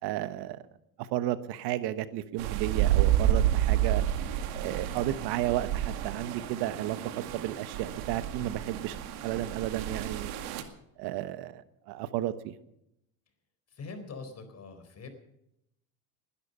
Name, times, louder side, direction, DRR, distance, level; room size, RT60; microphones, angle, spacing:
voice 1, 0.0-0.6 1.0-4.0 4.5-10.3 11.0-12.6, right 13 dB, 65° right, 13 dB, 1.3 m, -33 dB
sound 1, 2.4-10.6, right 12 dB, 85° right, 2.2 m, -30 dB
voice 2, 13.7-15.1, left 4 dB, 35° left, 9 dB, 4.3 m, -43 dB
20.0 x 12.0 x 5.5 m, 0.80 s
supercardioid pair, 100°, 42 cm